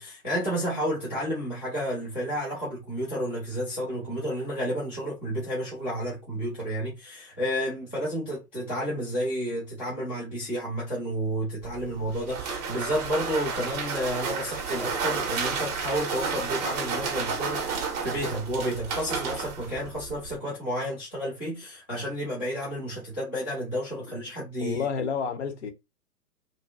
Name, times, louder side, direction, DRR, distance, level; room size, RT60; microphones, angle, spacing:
voice 1, 0.0-24.8, equal, 10° left, 0.4 m, -31 dB
sound 1, 11.6-20.4, right 5 dB, 25° right, 0.7 m, -32 dB
voice 2, 24.6-25.7, left 6 dB, 45° left, 0.8 m, -30 dB
2.6 x 2.6 x 2.5 m
hypercardioid pair, 130°, 49 cm